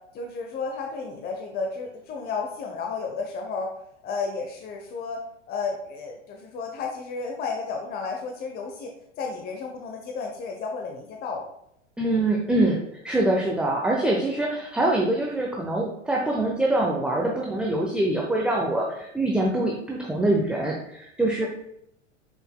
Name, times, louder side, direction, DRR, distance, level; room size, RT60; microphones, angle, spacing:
voice 1, 0.1-3.7 4.0-5.2 5.5-8.9 9.2-11.4, left 4 dB, 25° left, 3 dB, 0.9 m, -32 dB
voice 2, 12.0-21.5, right 1 dB, 5° right, -2 dB, 0.8 m, -24 dB
7.9 x 6.2 x 2.3 m, 0.77 s
figure-of-eight pair, 90°, 37 cm